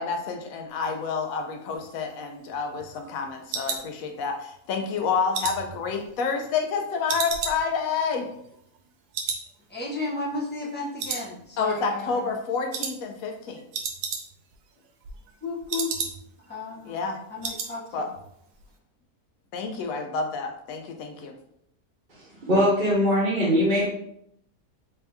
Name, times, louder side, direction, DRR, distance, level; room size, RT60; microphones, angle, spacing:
voice 1, 0.0-8.3 11.6-13.6 16.9-17.2 17.9-18.1 19.5-21.3, left 5 dB, 70° left, 4 dB, 1.0 m, -29 dB
sound 1, 1.8-4.6 4.9-6.7 7.1-8.9 9.1-9.5 9.8-9.9 10.3-10.7 11.0-11.8 12.1-12.3 12.7-13.0 13.3-13.4 13.6-14.6 14.9-16.5 16.8-16.9 17.1-17.7 18.0-18.3 18.6-18.7, right 5 dB, 90° right, 1.1 m, -33 dB
voice 2, 9.7-12.3 15.4-16.1 16.5-17.0 17.3-18.1, left 2 dB, 10° left, -5 dB, 0.5 m, -33 dB
voice 3, 22.4-23.9, equal, 35° right, -8 dB, 1.1 m, -21 dB
3.4 x 2.7 x 3.4 m, 0.73 s
omnidirectional pair, 1.6 m